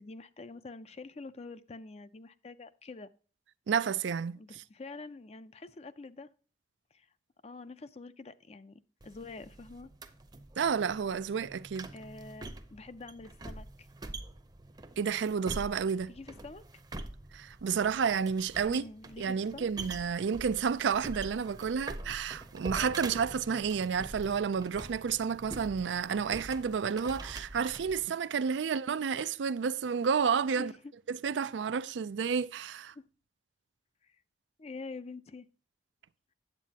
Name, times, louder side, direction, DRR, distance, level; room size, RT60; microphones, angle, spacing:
voice 1, 0.0-3.1 4.3-6.3 6.9-7.1 7.4-9.9 11.9-13.9 16.1-16.6 18.6-19.7 30.6-30.9 32.9-33.0 34.1-34.2 34.6-35.5, left 3 dB, 35° left, 0.5 m, -46 dB
voice 2, 3.7-4.4 10.6-11.9 15.0-16.1 17.3-18.8 19.2-30.7 31.1-32.9, right 6 dB, 85° right, 0.4 m, -31 dB
sound 1, 9.0-28.1, right 2 dB, 25° right, 0.7 m, -45 dB
9.1 x 8.2 x 2.8 m
head